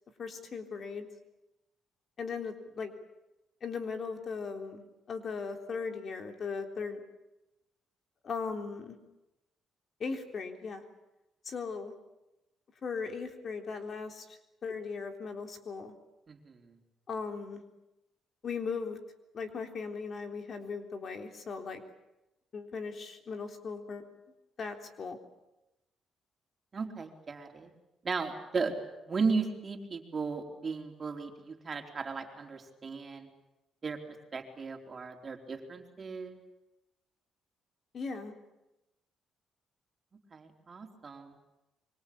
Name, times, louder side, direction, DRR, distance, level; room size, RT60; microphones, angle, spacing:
voice 1, 0.2-1.1 2.2-2.9 3.6-7.0 8.2-9.0 10.0-10.8 11.5-11.9 12.8-15.9 17.1-17.6 18.4-19.0 19.3-21.8 22.5-24.0 24.6-25.2 37.9-38.3, left 5 dB, 50° left, 6 dB, 3.7 m, -38 dB
voice 2, 16.3-16.8 26.7-27.7 28.0-28.8 29.0-33.3 33.8-34.0 34.3-36.4 40.3-41.4, right 4 dB, 35° right, 4 dB, 4.1 m, -36 dB
25.5 x 24.0 x 8.7 m, 0.95 s
cardioid pair, 90°, 0 cm